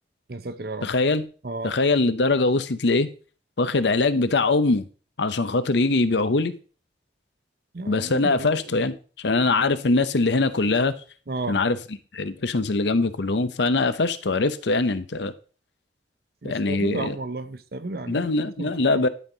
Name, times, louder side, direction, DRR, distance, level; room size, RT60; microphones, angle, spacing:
voice 1, 0.3-0.9 1.4-1.8 7.7-8.8 11.3-11.6 16.4-18.3 18.6-19.0, right 3 dB, 55° right, 0.7 m, -33 dB
voice 2, 0.8-1.3 1.6-3.1 3.6-4.9 5.2-6.5 7.9-10.9 11.5-11.8 12.1-15.3 16.4-17.2 18.1-19.1, left 3 dB, 75° left, 0.7 m, -22 dB
11.5 x 5.6 x 3.9 m
head